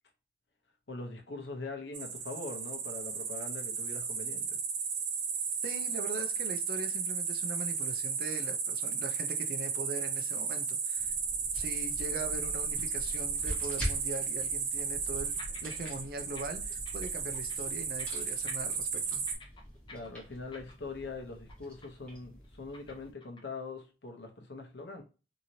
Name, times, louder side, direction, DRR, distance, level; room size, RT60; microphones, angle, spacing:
voice 1, 0.9-4.6 19.9-25.0, left 3 dB, 70° left, 0.8 m, -42 dB
sound 1, 1.9-19.3, right 5 dB, 90° right, 0.8 m, -34 dB
voice 2, 5.6-11.1 11.5-19.2, right 2 dB, 55° right, 0.5 m, -41 dB
sound 2, 9.2-9.4 9.7-9.8 10.4-10.5 13.7-13.8 14.4-15.1 15.4-15.9 16.2-16.4 16.7-17.7 18.0-18.2 18.5-21.0 21.3-21.5 21.8-22.2 22.4-23.6, left 2 dB, 25° left, 0.7 m, -51 dB
sound 3, 11.0-23.1, equal, 5° left, 1.1 m, -45 dB
2.9 x 2.8 x 2.7 m
head